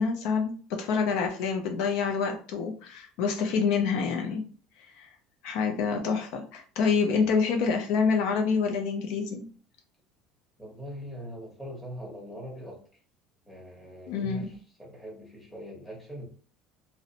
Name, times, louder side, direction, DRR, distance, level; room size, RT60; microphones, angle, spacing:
voice 1, 0.0-4.4 5.0-5.1 5.4-9.5 14.1-14.5, left 5 dB, 70° left, 3 dB, 0.4 m, -27 dB
voice 2, 10.6-12.8 13.4-16.2, equal, 5° left, -2 dB, 1.2 m, -42 dB
2.4 x 2.1 x 2.8 m, 0.40 s
supercardioid pair, 110°, 0 cm